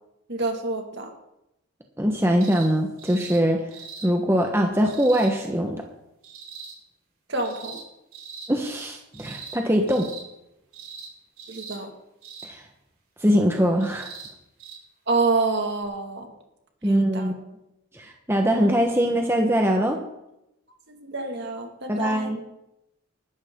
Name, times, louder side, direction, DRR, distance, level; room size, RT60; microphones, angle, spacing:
voice 1, 0.3-1.1 7.3-7.8 11.5-11.9 15.1-16.3 16.8-17.3 20.9-22.3, right 3 dB, 50° right, 4 dB, 2.1 m, -27 dB
voice 2, 2.0-3.7 4.0-5.8 8.5-10.1 12.4-12.6 13.2-14.1 16.8-17.3 17.9-20.0 21.9-22.4, equal, 10° right, 2 dB, 1.2 m, -22 dB
sound 1, 2.4-2.7 3.0-3.4 3.7-4.1 4.8-5.3 6.2-6.7 7.4-7.8 8.1-8.5 9.1-9.6 9.9-10.2 10.7-11.1 11.4-11.8 12.2-12.5 13.8-14.3 14.6-14.8 15.8-15.9, right 5 dB, 75° right, 5.0 m, -41 dB
20.0 x 12.5 x 3.8 m, 0.87 s
head